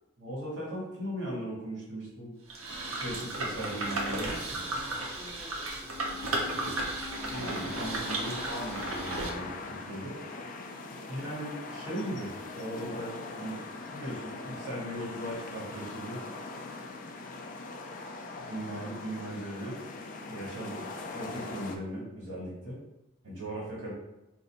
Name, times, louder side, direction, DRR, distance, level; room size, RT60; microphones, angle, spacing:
voice 1, 0.2-2.3 3.0-4.4 7.3-10.2 11.1-13.6 13.9-16.2 18.4-19.8 20.3-20.8 21.1-22.8 23.2-23.9, right 1 dB, 60° right, -5 dB, 1.4 m, -38 dB
sound 1, 2.5-9.3, right 2 dB, 85° right, 0.7 m, -34 dB
voice 2, 4.5-6.9 20.7-20.9, left 1 dB, ahead, -6 dB, 0.6 m, -52 dB
sound 2, 5.7-12.3 12.5-12.6, left 3 dB, 45° right, 0.7 m, -48 dB
sound 3, 7.1-21.8, left 3 dB, 40° left, 0.3 m, -41 dB
2.7 x 2.5 x 4.2 m, 0.94 s
head